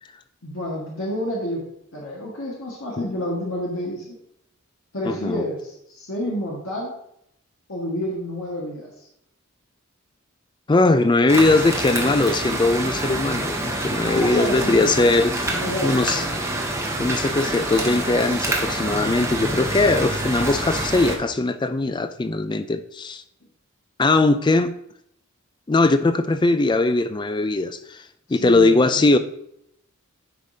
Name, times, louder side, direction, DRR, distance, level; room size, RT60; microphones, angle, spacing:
voice 1, 0.4-1.6 1.9-4.2 4.9-6.9 7.7-8.9 14.0-15.1 15.4-16.4 28.3-29.0, left 1 dB, 70° left, -4 dB, 1.6 m, -29 dB
voice 2, 5.0-5.4 10.7-15.3 15.8-16.3 17.0-23.2 24.0-24.7 25.7-28.0 28.3-29.2, left 2 dB, 20° left, 10 dB, 0.3 m, -20 dB
sound 1, 11.3-21.2, right 1 dB, 15° right, 0.8 m, -26 dB
9.9 x 5.0 x 2.7 m, 0.75 s
head